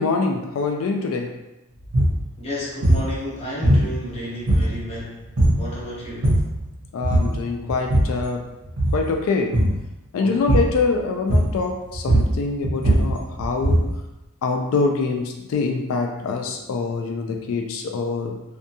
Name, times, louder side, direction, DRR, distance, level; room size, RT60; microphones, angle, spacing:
voice 1, 0.0-1.4 6.9-8.5 8.9-9.6 10.1-13.9 14.4-18.4, left 4 dB, 70° left, 3 dB, 0.3 m, -24 dB
sound 1, 1.8-2.2 2.8-3.1 3.6-4.1 4.5-4.9 5.4-5.7 6.0-6.6 7.0-7.4 7.7-8.2 8.7-9.1 9.5-9.8 10.5-10.8 11.3-11.7 11.9-14.0, right 1 dB, 80° right, 0.8 m, -19 dB
voice 2, 2.4-5.3 5.5-6.4 10.2-10.4, left 1 dB, 30° left, -5 dB, 0.7 m, -32 dB
2.6 x 2.3 x 2.6 m, 0.97 s
head